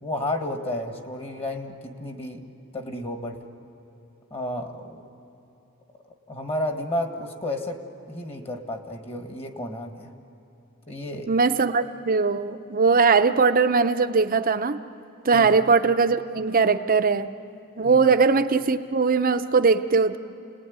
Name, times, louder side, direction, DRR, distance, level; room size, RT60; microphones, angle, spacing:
voice 1, 0.0-3.4 4.3-5.0 6.3-7.8 8.1-10.1 10.9-11.3 15.3-15.5 17.8-18.0, left 1 dB, 25° left, 5 dB, 1.8 m, -32 dB
voice 2, 11.3-14.8 15.2-17.3 17.8-20.2, right 4 dB, 40° right, 9 dB, 0.8 m, -20 dB
30.0 x 19.5 x 9.5 m, 3.0 s
head